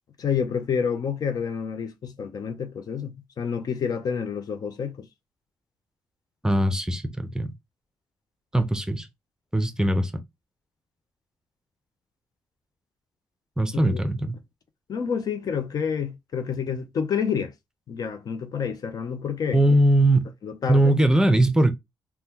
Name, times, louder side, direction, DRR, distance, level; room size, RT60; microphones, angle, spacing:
voice 1, 0.2-5.1 13.9-14.0 14.9-17.5 17.9-19.8 20.4-20.9, left 7 dB, 55° left, 0.6 m, -29 dB
voice 2, 6.4-7.5 8.5-9.1 9.5-10.1 13.6-14.4 19.5-20.3 20.7-21.7, right 1 dB, 10° right, 0.6 m, -20 dB
3.5 x 2.2 x 2.8 m
cardioid pair, 70°, 8 cm